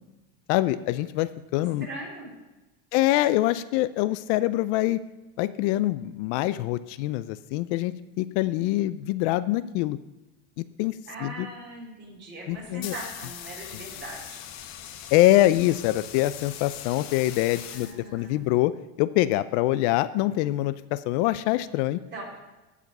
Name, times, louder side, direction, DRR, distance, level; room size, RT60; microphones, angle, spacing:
voice 1, 0.5-1.9 2.9-5.0 5.4-10.0 10.6-10.9 11.2-11.5 12.5-13.0 15.1-22.0, left 16 dB, 70° left, 15 dB, 0.5 m, -24 dB
voice 2, 1.8-2.3 11.1-14.4 17.7-18.6 22.1-22.3, right 2 dB, 30° right, -3 dB, 4.3 m, -40 dB
sound 1, 12.5-18.5, left 10 dB, 50° left, 1.0 m, -41 dB
15.0 x 5.0 x 5.4 m, 1.1 s
supercardioid pair, 135°, 35 cm